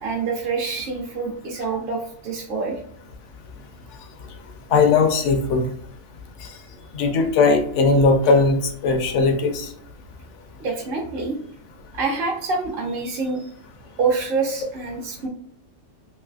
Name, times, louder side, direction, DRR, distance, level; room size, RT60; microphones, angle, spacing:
voice 1, 0.0-2.8 10.6-11.4 11.9-13.5 14.0-15.3, right 4 dB, 55° right, -1 dB, 0.9 m, -26 dB
voice 2, 4.7-5.6 6.9-8.6 8.8-9.7, left 4 dB, 80° left, 4 dB, 1.0 m, -18 dB
3.2 x 3.0 x 2.3 m, 0.69 s
omnidirectional pair, 1.2 m